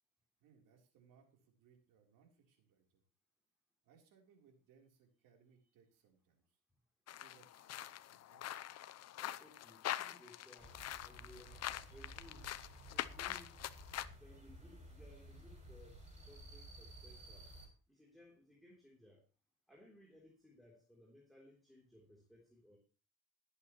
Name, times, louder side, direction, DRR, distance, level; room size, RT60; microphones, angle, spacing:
voice 1, 0.4-3.0 3.8-6.6 7.1-8.7, right 6 dB, 90° right, 2 dB, 3.7 m, -69 dB
sound 1, 7.1-14.1, left 12 dB, 55° left, 0.7 m, -44 dB
voice 2, 9.2-12.5 12.9-13.5 14.1-17.5 17.9-19.2 19.7-22.8, left 1 dB, ahead, -3 dB, 3.3 m, -62 dB
sound 2, 10.6-17.7, right 1 dB, 20° right, 6.5 m, -55 dB
21.0 x 8.6 x 3.1 m, 0.34 s
cardioid pair, 135°, 31 cm